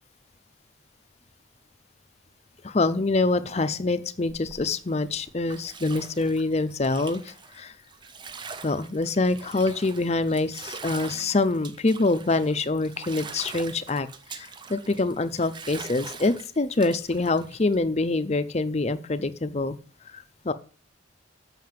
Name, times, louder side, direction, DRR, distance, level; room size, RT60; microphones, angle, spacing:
voice 1, 2.6-7.7 8.6-19.8 20.1-20.5, left 3 dB, 35° left, 12 dB, 0.6 m, -25 dB
Bathtub (filling or washing), 4.3-17.8, right 5 dB, 25° right, 0.6 m, -43 dB
7.6 x 5.7 x 7.4 m, 0.40 s
head